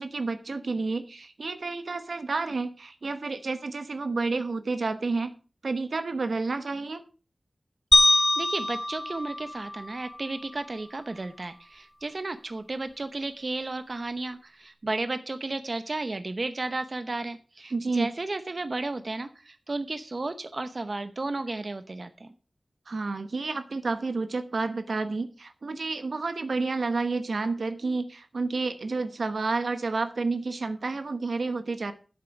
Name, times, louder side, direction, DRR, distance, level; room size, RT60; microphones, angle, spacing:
voice 1, 0.0-5.3 5.6-7.0 17.7-18.1 22.9-31.9, right 3 dB, 80° right, 9 dB, 1.0 m, -30 dB
sound 1, 7.9-10.3, left 1 dB, 25° left, 1.4 m, -24 dB
voice 2, 8.0-22.3, right 2 dB, 50° right, 9 dB, 0.8 m, -33 dB
11.0 x 7.8 x 4.8 m, 0.36 s
wide cardioid pair, 80°, 0 cm